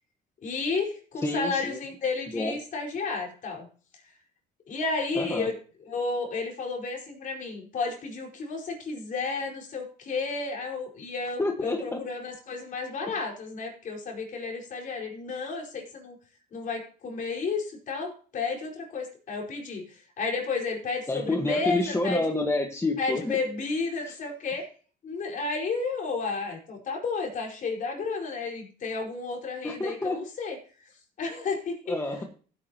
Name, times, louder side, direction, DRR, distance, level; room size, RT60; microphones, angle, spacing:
voice 1, 0.4-3.7 4.7-5.5 5.9-16.2 16.5-22.2 23.0-24.6 25.0-30.6 31.2-31.8, left 4 dB, 50° left, 0 dB, 4.9 m, -32 dB
voice 2, 1.2-1.8 2.3-2.5 5.1-5.5 11.4-12.0 13.1-13.2 21.1-23.4 24.1-24.2 29.6-30.2 31.9-32.2, left 2 dB, 15° left, 3 dB, 1.5 m, -28 dB
16.0 x 9.1 x 3.0 m, 0.41 s
cardioid pair, 110°, 17 cm